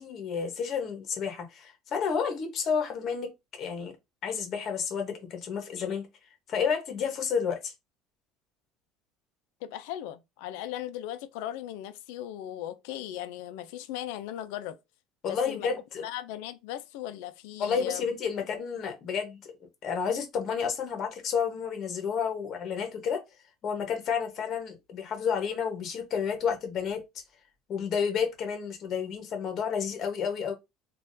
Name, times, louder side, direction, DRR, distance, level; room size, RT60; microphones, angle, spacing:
voice 1, 0.0-3.3 3.6-4.0 4.2-6.1 6.5-7.7 15.2-16.0 17.6-19.4 19.8-23.2 23.6-27.0 27.7-30.5, left 6 dB, 40° left, 1.0 m, -30 dB
voice 2, 9.6-14.8 15.3-15.7 16.0-18.1 18.4-18.5, left 12 dB, 85° left, 0.4 m, -38 dB
3.5 x 2.4 x 2.6 m
cardioid pair, 150°, 0 cm